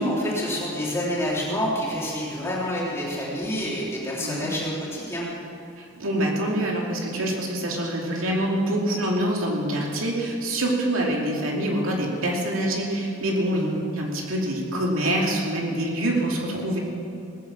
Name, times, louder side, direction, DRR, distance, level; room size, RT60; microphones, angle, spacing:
voice 1, 0.0-5.3 13.5-13.8, equal, 15° left, -6 dB, 3.2 m, -28 dB
voice 2, 4.1-4.5 5.8-13.7 14.0-16.8, right 1 dB, 80° right, -1 dB, 2.5 m, -25 dB
18.5 x 8.6 x 7.3 m, 2.6 s
head